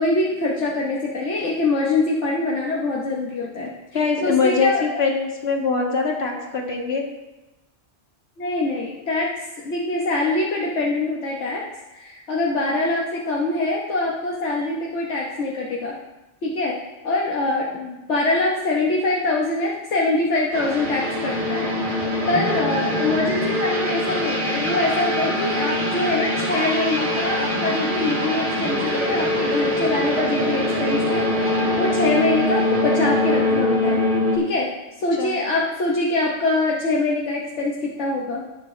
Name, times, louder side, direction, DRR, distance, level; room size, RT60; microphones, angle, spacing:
voice 1, 0.0-3.7 4.2-5.0 8.4-9.3 9.6-11.6 11.9-15.9 16.4-16.8 17.0-21.7 22.3-34.0 34.3-38.4, left 2 dB, 75° left, -3 dB, 1.4 m, -24 dB
voice 2, 3.9-7.0 35.2-35.3, left 4 dB, 60° left, 0 dB, 1.9 m, -22 dB
sound 1, 20.5-34.4, left 1 dB, 45° right, 2.2 m, -23 dB
18.5 x 6.3 x 3.2 m, 1.1 s
omnidirectional pair, 1.2 m